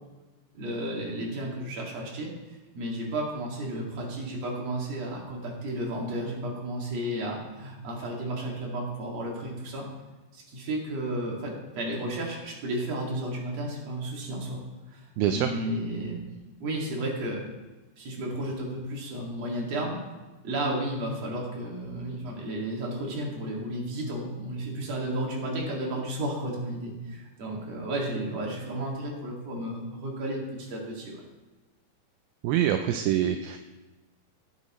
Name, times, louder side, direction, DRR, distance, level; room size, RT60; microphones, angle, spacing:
voice 1, 0.5-2.3 2.7-9.8 10.3-14.6 14.9-16.2 16.6-17.4 18.0-20.0 20.4-31.2, right 1 dB, 45° right, -2 dB, 3.0 m, -33 dB
voice 2, 15.2-15.5 32.4-33.6, right 10 dB, 80° right, 7 dB, 2.4 m, -25 dB
17.0 x 9.4 x 3.1 m, 1.2 s
omnidirectional pair, 4.5 m